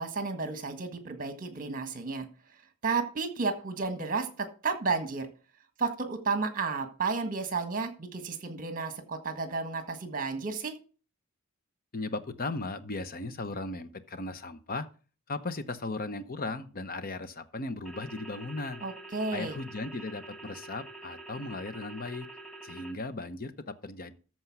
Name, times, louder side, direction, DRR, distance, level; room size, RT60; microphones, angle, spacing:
voice 1, 0.0-2.3 2.8-5.3 5.8-10.7 18.8-19.6, right 4 dB, 40° right, 7 dB, 1.6 m, -32 dB
voice 2, 11.9-14.9 15.3-18.8 19.3-22.3 22.6-24.2, left 3 dB, 40° left, 12 dB, 0.9 m, -37 dB
sound 1, 17.9-22.9, right 2 dB, ahead, 1.2 m, -46 dB
13.5 x 4.6 x 6.0 m, 0.37 s
head